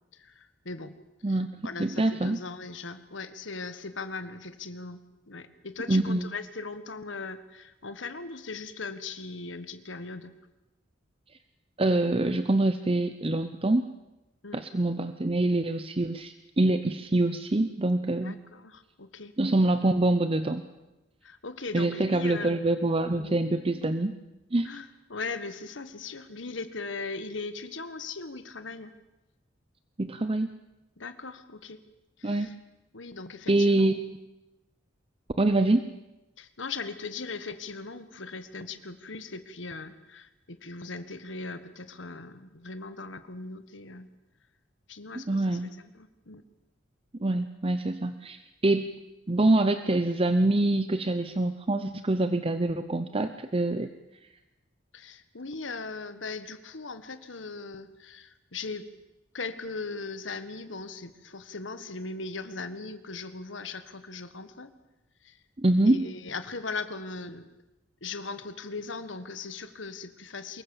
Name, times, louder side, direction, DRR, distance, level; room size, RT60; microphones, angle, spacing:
voice 1, 0.1-0.9 1.3-5.0 5.3-10.3 14.4-14.6 18.2-19.3 21.2-22.5 24.6-28.9 31.0-31.8 32.2-32.5 32.9-34.0 36.4-44.1 44.9-46.4 54.9-58.8 59.3-64.7 65.2-65.4 65.8-67.5 68.0-70.6, left 4 dB, 80° left, 11 dB, 1.6 m, -39 dB
voice 2, 1.2-2.4 5.9-6.2 11.8-13.9 14.5-18.4 19.4-20.6 21.7-24.2 24.5-24.7 30.0-30.5 32.2-32.5 33.5-34.1 35.4-35.9 45.3-45.7 47.2-49.0 49.3-53.9 65.6-66.1, right 2 dB, 30° right, 10 dB, 0.8 m, -25 dB
24.0 x 21.5 x 7.2 m, 0.99 s
head